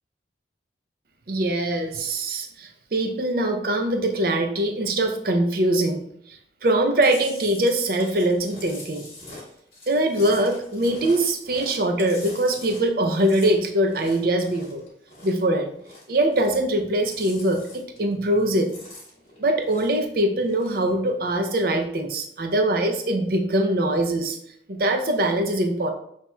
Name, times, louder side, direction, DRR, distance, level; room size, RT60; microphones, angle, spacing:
voice 1, 1.3-6.0 6.3-9.0 9.9-14.8 15.2-15.7 16.1-18.7 19.4-24.4 24.7-25.9, right 1 dB, 55° right, 5 dB, 0.5 m, -23 dB
Chewing mastication, 7.0-15.5 15.8-16.7 17.0-18.1 18.4-20.1 20.4-20.9, left 2 dB, 35° left, 1.4 m, -43 dB
6.0 x 2.9 x 2.2 m, 0.69 s
head